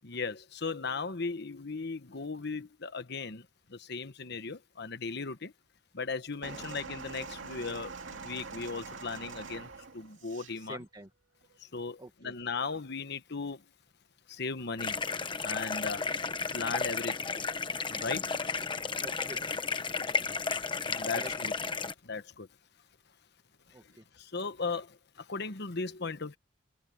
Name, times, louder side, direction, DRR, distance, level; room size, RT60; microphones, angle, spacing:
voice 1, 0.0-5.5 5.9-10.8 11.6-13.6 14.3-15.0 15.4-16.1 16.5-17.4 17.9-18.3 20.5-21.5 22.0-22.5 24.1-26.4, left 4 dB, 60° left, 1.2 m, -37 dB
sound 1, 6.4-10.6 11.4-11.6, right 4 dB, 85° right, 2.5 m, -44 dB
voice 2, 10.6-11.1 12.0-12.3 19.0-19.4 21.1-21.5 23.7-24.0, right 1 dB, 20° right, 1.7 m, -47 dB
sound 2, 14.8-21.9, left 4 dB, 25° left, 1.0 m, -33 dB
head